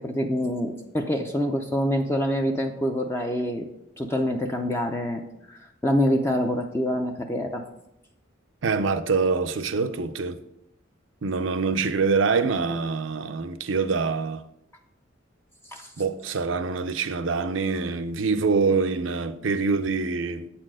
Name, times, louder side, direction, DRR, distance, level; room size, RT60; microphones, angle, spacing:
voice 1, 0.0-3.7 4.0-7.6 15.7-15.9, equal, 15° left, 0.5 m, -26 dB
voice 2, 8.6-10.4 11.2-14.4 16.0-20.5, right 4 dB, 85° right, 0.6 m, -25 dB
8.1 x 4.3 x 6.2 m
head